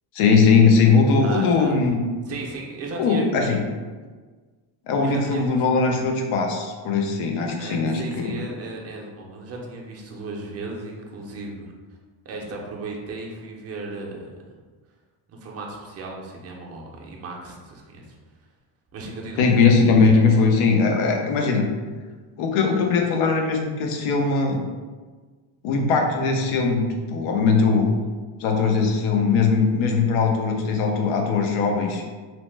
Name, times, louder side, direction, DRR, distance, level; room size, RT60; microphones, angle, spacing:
voice 1, 0.1-2.0 3.0-3.6 4.9-8.3 19.4-21.7 22.4-24.6 25.6-27.9 28.4-32.0, left 4 dB, 75° left, 2 dB, 0.7 m, -20 dB
voice 2, 1.2-1.8 2.3-3.6 5.0-5.6 7.6-11.7 12.2-14.6 15.3-18.2 18.9-19.4, right 3 dB, 30° right, -1 dB, 0.5 m, -36 dB
2.8 x 2.0 x 3.2 m, 1.4 s
cardioid pair, 130°, 50 cm